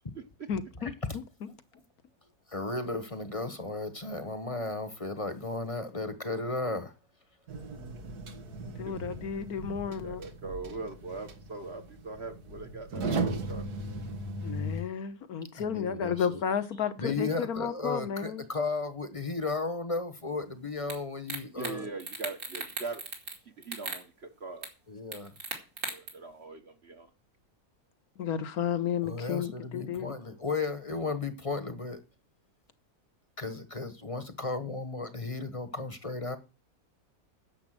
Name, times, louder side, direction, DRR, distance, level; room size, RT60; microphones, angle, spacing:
voice 1, 0.5-0.9 8.6-10.2 14.4-18.4 28.2-30.1, left 7 dB, 75° left, 1.6 m, -32 dB
voice 2, 2.5-6.9 15.5-16.4 17.0-21.9 24.9-25.4 29.0-32.0 33.4-36.4, left 3 dB, 25° left, 1.1 m, -34 dB
sound 1, 7.5-14.8, right 2 dB, 85° right, 2.2 m, -37 dB
voice 3, 9.9-13.7 21.6-23.0 23.6-24.7 25.9-27.1, right 3 dB, 45° right, 1.4 m, -41 dB
sound 2, 20.9-21.0 21.3-21.7 22.0-23.4 23.6-24.0 24.6-24.7 25.1-26.1, right 3 dB, 65° right, 3.2 m, -36 dB
10.5 x 7.3 x 7.6 m
omnidirectional pair, 1.6 m